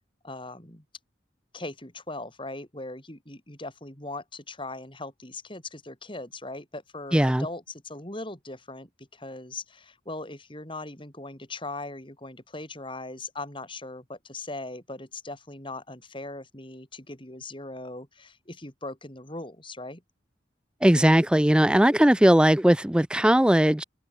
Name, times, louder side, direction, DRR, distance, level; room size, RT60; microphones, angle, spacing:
voice 1, 0.2-0.8 1.5-20.0, left 2 dB, 25° left, 5.0 m, -39 dB
voice 2, 7.1-7.5 20.8-23.8, right 1 dB, 5° right, 0.4 m, -19 dB
head